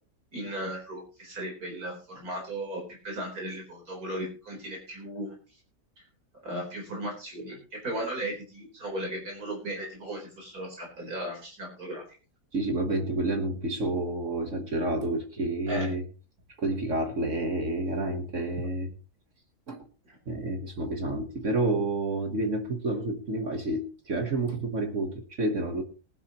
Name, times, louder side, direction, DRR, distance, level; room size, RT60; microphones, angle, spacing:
voice 1, 0.3-5.3 6.0-6.1 6.4-12.1 15.7-15.9, right 1 dB, 70° right, 0 dB, 4.7 m, -36 dB
voice 2, 12.5-16.0 16.6-18.9 19.7-19.9 20.3-25.8, right 2 dB, 55° right, 5 dB, 1.7 m, -29 dB
19.0 x 11.0 x 3.0 m, 0.35 s
omnidirectional pair, 1.6 m